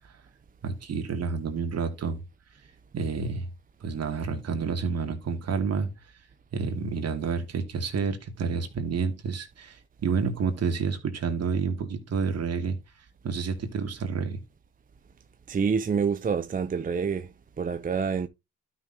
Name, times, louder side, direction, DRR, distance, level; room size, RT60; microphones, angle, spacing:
voice 1, 0.6-2.2 2.9-3.5 3.8-5.9 6.5-12.8 13.2-14.4, right 5 dB, 55° right, 2.7 m, -29 dB
voice 2, 15.5-17.3 17.6-18.3, right 6 dB, 30° right, 0.6 m, -27 dB
12.5 x 6.1 x 2.9 m
cardioid pair, 90°, 30 cm